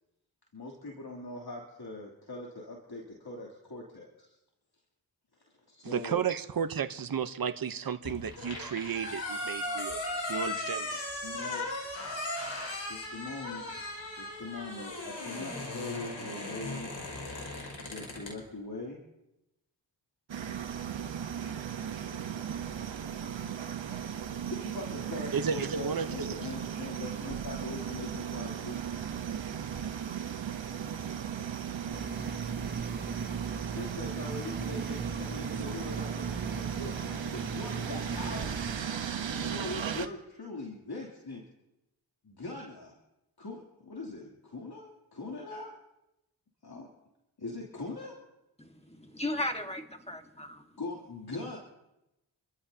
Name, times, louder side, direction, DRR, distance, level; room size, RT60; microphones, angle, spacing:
voice 1, 0.5-4.4 5.7-6.2 11.2-11.7 12.8-16.9 17.8-19.0 24.3-28.8 33.7-38.6 39.3-41.4 42.2-42.9 43.4-45.7 46.6-46.9 47.4-48.2 50.8-51.6, left 2 dB, 55° left, -3 dB, 3.1 m, -42 dB
voice 2, 5.8-10.0 10.3-11.0 25.3-26.4, right 7 dB, 50° right, 10 dB, 0.9 m, -33 dB
sound 1, 8.0-18.3, left 1 dB, 75° left, 5.7 m, -37 dB
sound 2, 20.3-40.1, right 8 dB, 75° right, 1.1 m, -36 dB
sound 3, 31.9-38.8, right 4 dB, 25° right, 0.8 m, -39 dB
voice 3, 48.6-50.7, left 1 dB, 15° left, 4 dB, 1.7 m, -36 dB
28.0 x 14.0 x 2.8 m, 0.93 s
cardioid pair, 50°, 46 cm